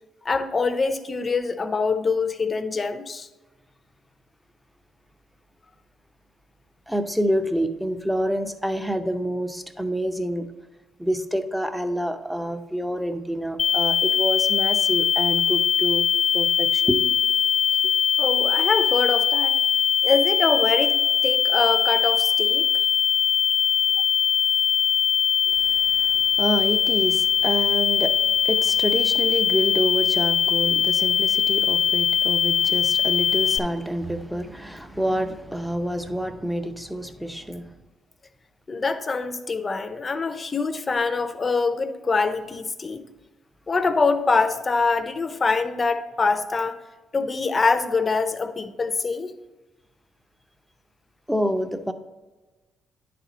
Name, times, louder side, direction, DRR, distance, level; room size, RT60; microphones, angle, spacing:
voice 1, 0.2-3.3 18.2-19.6 20.0-21.0 21.2-22.7 38.7-43.0 43.7-46.8 47.1-49.3, left 4 dB, 30° left, 9 dB, 0.7 m, -24 dB
voice 2, 6.9-10.5 11.0-16.1 16.3-17.0 25.6-37.7 51.3-51.9, equal, ahead, 8 dB, 0.7 m, -27 dB
sound 1, 13.6-33.6, left 8 dB, 55° left, 0.3 m, -21 dB
10.0 x 4.3 x 4.0 m, 1.2 s
cardioid pair, 90°, 0 cm